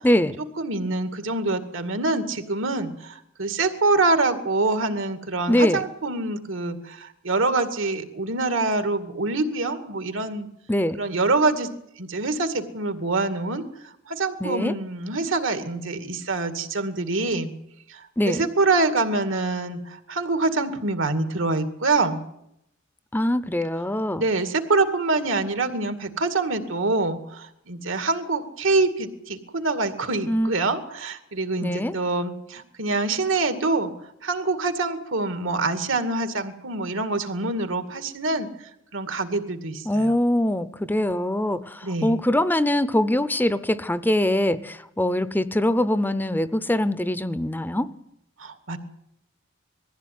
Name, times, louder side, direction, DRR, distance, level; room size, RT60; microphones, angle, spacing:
voice 1, 0.0-0.4 5.5-5.8 10.7-11.0 14.4-14.7 18.2-18.4 23.1-24.3 30.3-30.5 31.6-31.9 39.9-47.9, left 1 dB, 10° left, 14 dB, 0.7 m, -23 dB
voice 2, 0.6-10.5 10.9-11.7 12.0-13.6 14.1-17.5 17.9-22.2 24.2-33.9 34.2-38.5 38.9-40.1 41.8-42.2 48.4-48.8, right 3 dB, 75° right, 9 dB, 2.2 m, -25 dB
20.5 x 15.0 x 9.4 m, 0.78 s
head